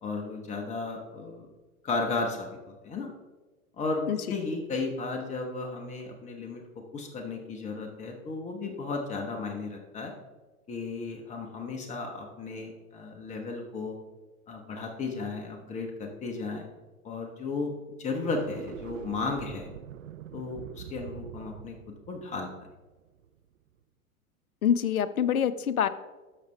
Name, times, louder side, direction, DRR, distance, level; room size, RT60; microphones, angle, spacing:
voice 1, 0.0-1.5 1.8-3.1 3.8-6.6 6.9-10.1 10.7-14.0 14.5-16.7 17.0-17.7 18.0-19.7 20.3-22.5, left 3 dB, 15° left, 2 dB, 1.0 m, -34 dB
sound 1, 18.2-23.4, right 10 dB, 65° right, 0.7 m, -44 dB
voice 2, 24.6-25.9, left 8 dB, 75° left, 14 dB, 0.6 m, -25 dB
12.0 x 6.6 x 3.3 m, 1.2 s
figure-of-eight pair, 95°, 43 cm